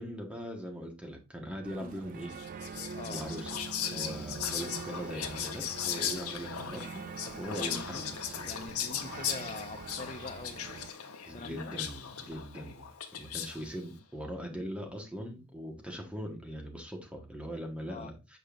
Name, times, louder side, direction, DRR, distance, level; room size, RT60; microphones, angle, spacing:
voice 1, 0.0-2.3 3.1-3.6 3.9-8.6 11.2-12.9 13.2-18.4, equal, 5° right, 1.3 m, -41 dB
sound 1, 1.6-10.9, right 6 dB, 40° right, 0.3 m, -44 dB
Whispering, 2.3-13.7, left 8 dB, 75° left, 1.0 m, -38 dB
voice 2, 7.3-8.2 8.4-11.7 17.9-18.1, left 4 dB, 30° left, 0.5 m, -45 dB
7.7 x 5.1 x 2.5 m
head